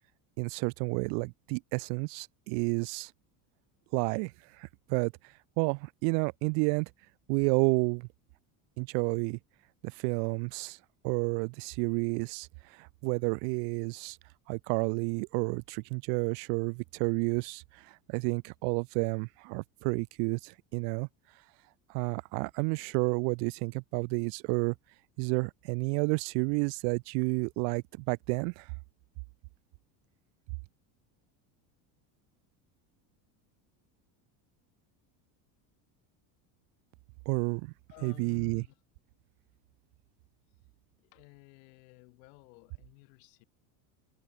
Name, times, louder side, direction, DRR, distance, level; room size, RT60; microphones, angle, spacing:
voice 1, 0.4-3.1 3.9-4.3 4.6-5.1 5.6-6.9 7.3-8.1 8.8-9.4 9.8-10.8 11.0-14.2 14.5-21.1 21.9-24.7 25.2-28.7 37.3-37.7 38.0-38.6, right 40 dB or more, 75° right, 0.6 m, -30 dB
voice 2, 37.9-38.7 41.0-43.4, left 32 dB, 85° left, 3.7 m, -54 dB
cardioid pair, 160°, 47 cm